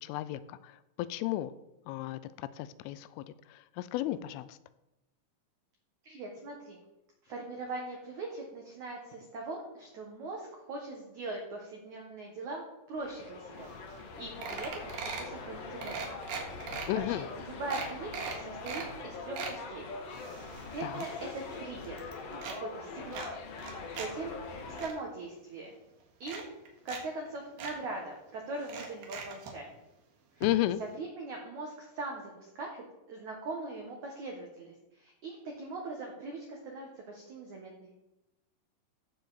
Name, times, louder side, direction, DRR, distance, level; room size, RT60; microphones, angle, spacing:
voice 1, 0.0-1.5 1.9-3.2 3.5-4.6 16.9-17.3 20.8-21.0 30.4-30.8, left 14 dB, 90° left, 14 dB, 3.1 m, -33 dB
voice 2, 6.0-6.8 7.2-16.0 16.6-19.9 20.3-21.9 22.3-23.4 24.0-24.3 24.7-25.7 26.2-26.5 26.8-29.7 30.3-37.9, right 3 dB, 80° right, 0 dB, 1.6 m, -41 dB
sound 1, 13.0-24.9, left 3 dB, 65° left, 2.5 m, -43 dB
sound 2, 13.7-13.8 14.0-14.1 14.4-15.3 15.8-16.9 17.3-17.4 17.7-18.9 19.2-19.6 20.1-21.6 21.8-22.6 23.1-24.1 24.4-24.9 25.7-25.8 26.2-27.0 27.3-27.4 27.6-27.7 28.6-29.5 30.4-30.5 30.8-30.9, right 5 dB, 60° right, 2.8 m, -40 dB
15.0 x 6.7 x 4.1 m, 0.93 s
omnidirectional pair, 5.6 m